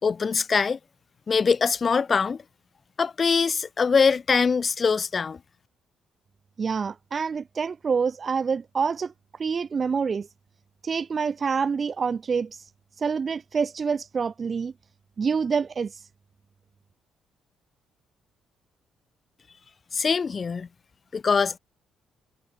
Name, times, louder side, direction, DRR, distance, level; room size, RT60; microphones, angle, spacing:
voice 1, 0.0-0.8 1.3-2.4 3.0-5.4 19.9-20.7 21.1-21.6, left 5 dB, 40° left, 4.6 m, -23 dB
voice 2, 6.6-9.1 9.4-10.3 10.8-12.7 13.0-14.7 15.2-16.1, right 5 dB, 45° right, 1.7 m, -27 dB
hypercardioid pair, 55°, 0 cm